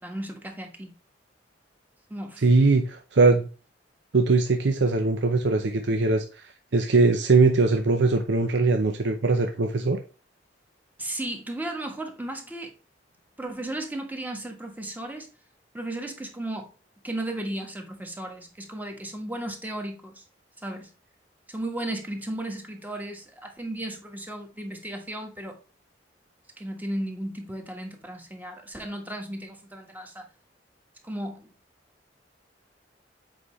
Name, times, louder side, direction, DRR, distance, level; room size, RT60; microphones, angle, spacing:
voice 1, 0.0-0.9 2.1-2.4 11.0-12.7 13.4-15.3 15.7-16.7 17.0-20.2 20.6-20.9 21.5-25.6 26.6-30.3 31.0-31.5, right 1 dB, 10° right, 1.3 m, -35 dB
voice 2, 2.4-3.5 4.1-10.0, right 3 dB, 65° right, 0.6 m, -21 dB
7.7 x 5.0 x 3.1 m
head